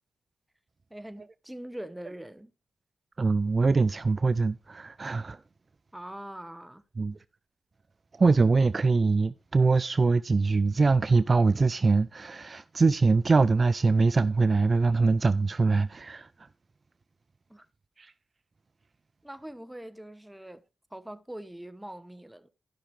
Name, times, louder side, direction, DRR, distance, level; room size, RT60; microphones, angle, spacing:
voice 1, 0.9-2.5 5.9-6.8 17.5-17.7 19.2-20.6 20.9-22.5, right 1 dB, 10° right, 1.0 m, -42 dB
voice 2, 3.2-5.4 7.0-7.2 8.2-16.3 18.0-18.1, right 4 dB, 45° right, 0.4 m, -23 dB
12.0 x 5.9 x 4.6 m
cardioid pair, 55°, 0 cm